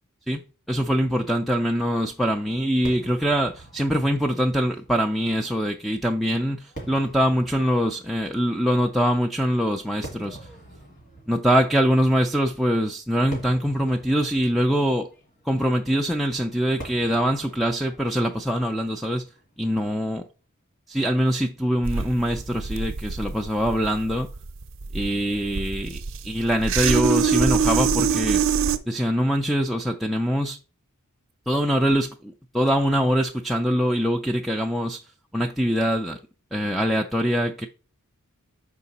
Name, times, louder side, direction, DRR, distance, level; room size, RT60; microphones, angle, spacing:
voice 1, 0.7-10.4 11.3-15.1 15.5-19.2 19.6-20.2 20.9-24.3 24.9-28.6 28.9-30.6 31.5-35.0 35.3-36.2 36.5-37.7, equal, ahead, 0.3 m, -23 dB
Fireworks, 2.8-20.2, right 1 dB, 35° left, 2.1 m, -46 dB
sound 1, 21.8-28.8, right 6 dB, 60° right, 0.6 m, -24 dB
5.8 x 4.7 x 4.1 m
head